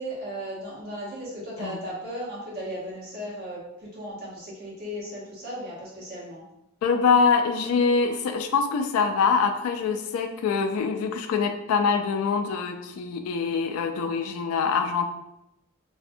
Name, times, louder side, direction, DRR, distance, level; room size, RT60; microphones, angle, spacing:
voice 1, 0.0-6.4, equal, 45° right, -7 dB, 1.0 m, -36 dB
voice 2, 6.8-15.0, left 5 dB, 85° left, 6 dB, 0.3 m, -24 dB
2.5 x 2.1 x 2.6 m, 0.85 s
head